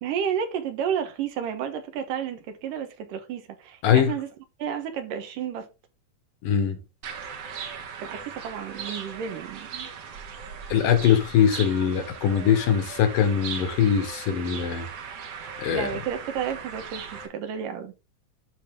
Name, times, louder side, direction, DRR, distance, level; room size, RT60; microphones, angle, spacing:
voice 1, 0.0-4.3 4.6-5.7 8.0-9.9 15.7-17.9, right 8 dB, 75° right, 2.8 m, -31 dB
voice 2, 6.4-6.8 10.7-14.9 15.6-15.9, left 8 dB, 75° left, 2.9 m, -22 dB
sound 1, 7.0-17.3, right 6 dB, 55° right, 2.0 m, -38 dB
12.0 x 4.2 x 3.7 m
omnidirectional pair, 3.9 m